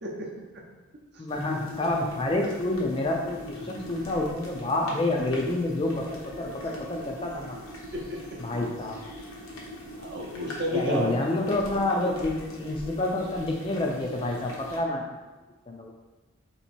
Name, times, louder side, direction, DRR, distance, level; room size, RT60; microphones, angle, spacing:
voice 1, 0.0-0.3 3.6-4.0 7.9-8.4 10.0-11.2, equal, 50° right, -1 dB, 0.7 m, -32 dB
voice 2, 1.2-7.6 8.4-9.0 10.7-15.0 15.7-15.9, left 2 dB, 25° left, 0 dB, 0.4 m, -28 dB
sound 1, 1.3-14.8, left 1 dB, 80° left, 0.9 m, -41 dB
3.1 x 2.9 x 4.3 m, 1.2 s
head